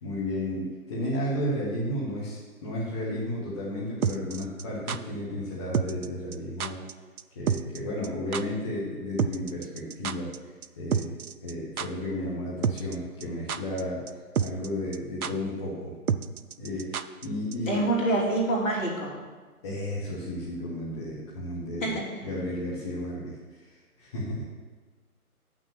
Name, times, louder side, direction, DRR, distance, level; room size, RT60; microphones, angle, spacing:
voice 1, 0.0-6.8 7.3-11.1 11.4-16.0 16.6-17.8 19.6-22.0 22.2-24.4, left 1 dB, 20° left, -7 dB, 1.2 m, -33 dB
sound 1, 4.0-5.0 5.7-6.1 6.3-6.4 6.6-6.9 7.2-7.3 7.5-8.1 8.3-8.4 9.2-10.4 10.6-10.7 10.9-11.5 11.8-11.9 12.6-13.0 13.2-13.8 14.1-14.2 14.4-14.7 14.9-15.0 15.2-15.3 16.1-17.3 17.5-17.6, right 7 dB, 70° right, 0.6 m, -28 dB
voice 2, 17.7-19.1 21.8-21.9, right 1 dB, 55° left, -3 dB, 3.1 m, -26 dB
6.8 x 6.2 x 7.6 m, 1.4 s
figure-of-eight pair, 150°, 45 cm